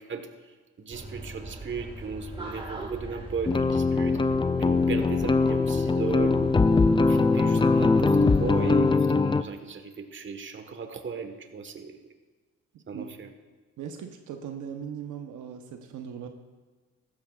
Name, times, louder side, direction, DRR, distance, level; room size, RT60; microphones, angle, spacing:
voice 1, 0.0-6.5 7.0-12.1 12.9-13.3, right 5 dB, 40° right, 6 dB, 1.4 m, -36 dB
sound 1, 0.9-8.9, right 2 dB, 15° right, 1.8 m, -41 dB
sound 2, 3.5-9.4, left 3 dB, 15° left, 0.4 m, -22 dB
voice 2, 12.7-13.1 13.8-16.3, right 8 dB, 80° right, 5 dB, 1.0 m, -39 dB
15.5 x 13.5 x 2.4 m, 1.4 s
cardioid pair, 90°, 30 cm